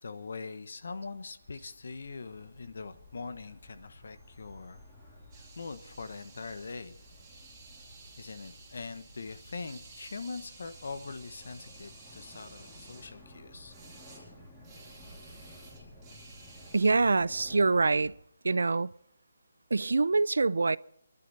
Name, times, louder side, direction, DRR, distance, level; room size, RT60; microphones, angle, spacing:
voice 1, 0.0-4.8 5.6-7.0 8.2-13.7, left 4 dB, 50° left, 1.1 m, -42 dB
sound 1, 0.8-18.1, left 1 dB, 5° left, 2.4 m, -54 dB
sound 2, 5.3-13.1 13.7-14.2 14.6-16.9, right 4 dB, 10° right, 4.0 m, -54 dB
voice 2, 16.7-18.1 18.4-18.9 19.7-20.8, right 3 dB, 75° right, 0.5 m, -25 dB
28.5 x 11.5 x 4.2 m
hypercardioid pair, 180°, 0 cm